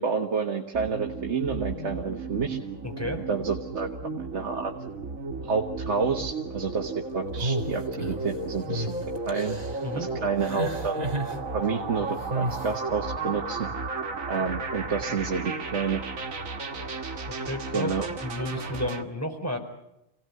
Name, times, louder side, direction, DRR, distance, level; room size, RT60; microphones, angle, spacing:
voice 1, 0.0-2.6 3.3-3.9 4.3-4.7 5.4-8.9 9.3-9.6 10.0-11.0 11.5-13.7 14.3-16.0 17.7-18.1, right 5 dB, 60° right, 2 dB, 1.8 m, -29 dB
sound 1, 0.7-19.0, right 3 dB, 90° right, 1.9 m, -34 dB
voice 2, 2.8-3.2 9.8-10.1 17.3-19.6, left 1 dB, 10° left, 3 dB, 4.3 m, -32 dB
sound 2, 7.4-8.3 8.7-8.9 9.3-9.8 10.4-11.4 12.3-12.6, right 1 dB, 30° right, 2.1 m, -31 dB
27.5 x 18.0 x 9.5 m, 0.87 s
omnidirectional pair, 1.3 m